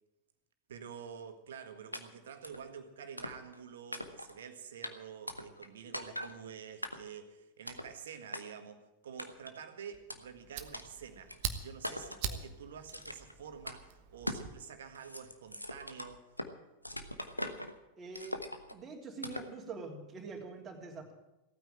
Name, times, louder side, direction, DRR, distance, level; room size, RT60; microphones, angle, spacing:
voice 1, 0.7-11.3 11.6-16.4, right 7 dB, 60° right, 8 dB, 1.6 m, -48 dB
sound 1, 1.9-2.0 2.4-2.6 3.2-3.6 3.9-4.4 4.8-4.9 5.3-5.7 5.9-6.3 6.8-7.2 7.7-7.9 8.3-8.4 9.2-9.6 10.1-10.2 10.7-10.8 11.3-11.4 11.8-12.2 12.9-13.3 13.7-13.8 14.3-14.5 14.8-16.5 16.8-17.7 18.1-18.7 19.2-19.5, left 1 dB, 90° left, 1.1 m, -41 dB
Fire, 9.9-14.5, right 8 dB, 45° right, 1.2 m, -43 dB
voice 2, 18.0-18.4 18.7-21.1, right 4 dB, 20° right, -1 dB, 3.3 m, -44 dB
16.5 x 9.3 x 8.9 m, 0.99 s
figure-of-eight pair, 90°, 0 cm